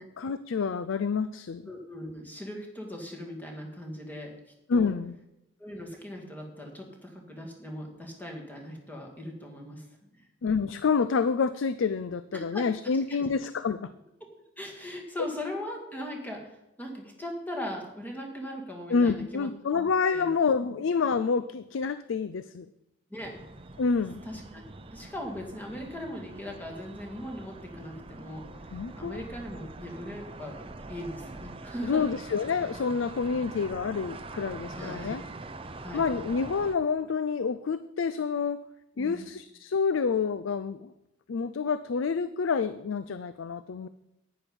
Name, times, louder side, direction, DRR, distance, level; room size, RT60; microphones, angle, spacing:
voice 1, 0.2-1.6 4.7-5.1 10.4-13.9 18.9-22.7 23.8-24.2 28.7-29.2 31.8-35.2 35.9-38.6 39.0-40.9 41.3-43.9, left 5 dB, 85° left, 13 dB, 0.4 m, -28 dB
voice 2, 1.7-4.3 4.7-4.9 5.6-9.9 10.1-10.3 12.3-12.7 13.1-13.2 14.6-19.8 20.1-20.3 20.6-20.7 23.1-23.4 24.2-24.6 24.9-32.0 34.7-35.1 35.8-36.0 39.0-39.2, left 1 dB, 10° left, 0 dB, 2.1 m, -39 dB
sound 1, 23.2-36.7, right 2 dB, 30° right, 0.6 m, -44 dB
10.5 x 9.6 x 5.2 m, 0.88 s
head